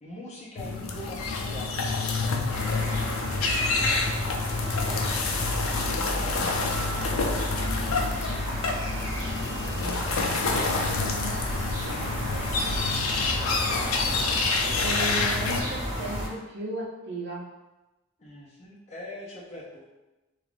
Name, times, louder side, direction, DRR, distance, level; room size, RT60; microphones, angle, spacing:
voice 1, 0.0-1.7 11.8-13.7 18.2-19.8, left 1 dB, 35° left, -5 dB, 0.6 m, -43 dB
sound 1, 0.6-15.6, left 3 dB, 80° left, 0.4 m, -28 dB
sound 2, 2.5-16.3, equal, 20° right, 1.4 m, -32 dB
voice 2, 4.8-6.3 9.8-11.5 14.8-17.5, right 1 dB, 55° right, -3 dB, 0.6 m, -37 dB
2.4 x 2.4 x 3.3 m, 1.0 s
head